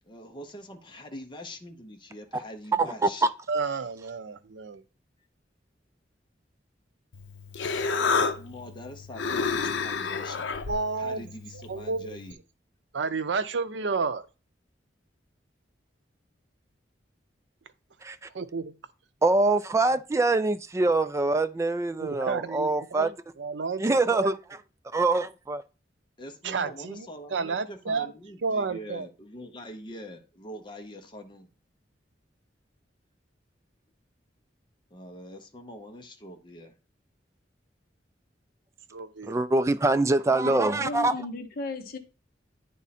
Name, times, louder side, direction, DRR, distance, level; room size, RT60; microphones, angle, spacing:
voice 1, 0.0-3.3 7.9-10.5 11.0-12.4 26.2-31.5 34.9-36.7, left 1 dB, 25° left, 0.9 m, -44 dB
voice 2, 2.7-3.3 18.0-18.2 19.2-23.1 23.8-24.4 24.9-25.6 39.3-41.1, right 2 dB, 15° right, 0.3 m, -24 dB
voice 3, 3.5-4.8 10.7-11.2 11.5-12.1 12.9-14.2 18.3-18.7 22.0-23.1 23.4-23.8 24.1-24.4 26.4-28.1 28.4-29.1 38.9-39.4, right 4 dB, 80° right, 0.6 m, -31 dB
Human voice, 7.1-12.3, left 4 dB, 80° left, 0.6 m, -31 dB
voice 4, 40.4-42.0, left 3 dB, 55° left, 0.9 m, -35 dB
9.5 x 3.6 x 4.2 m
head